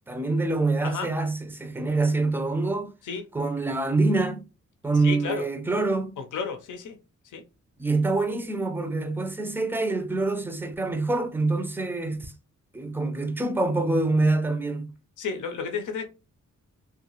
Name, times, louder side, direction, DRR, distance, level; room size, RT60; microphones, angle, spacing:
voice 1, 0.1-2.9 3.3-4.5 4.8-6.2 7.8-12.3 12.7-14.9, right 3 dB, 5° right, 0.4 m, -25 dB
voice 2, 5.0-5.4 6.2-7.0 7.3-7.4 15.2-16.1, left 5 dB, 80° left, 0.6 m, -32 dB
2.7 x 2.3 x 2.9 m
cardioid pair, 95°, 30 cm